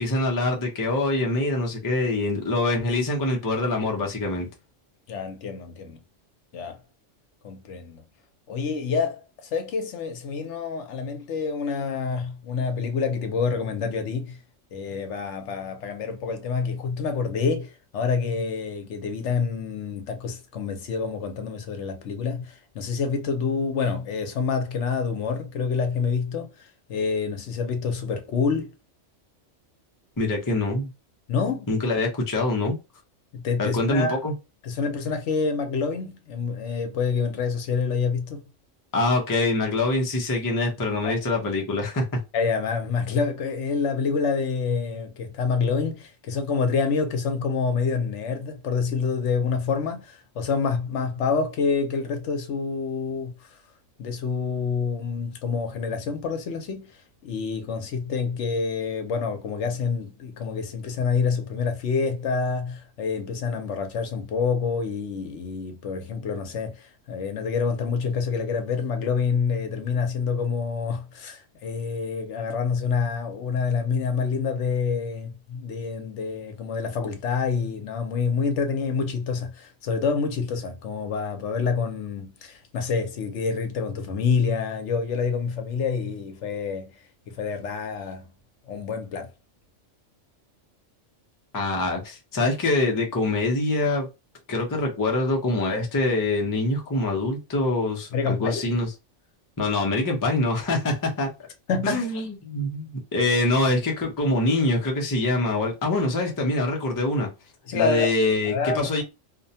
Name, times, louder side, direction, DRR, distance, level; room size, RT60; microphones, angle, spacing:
voice 1, 0.0-4.5 30.2-30.9 31.7-32.8 33.6-34.3 38.9-42.2 91.5-94.1 94.5-98.9 99.6-101.3 101.8-107.3 107.7-109.0, left 2 dB, 25° left, 0.5 m, -24 dB
voice 2, 5.1-6.0 6.5-6.8 7.4-8.0 8.5-14.4 14.7-28.7 31.3-31.7 33.3-34.2 34.6-38.4 41.0-41.2 42.3-53.6 54.0-88.3 88.7-89.3 98.1-98.6 101.7-102.3 107.7-108.1 108.4-109.0, left 5 dB, 75° left, 0.9 m, -27 dB
2.6 x 2.2 x 2.6 m
omnidirectional pair, 1.3 m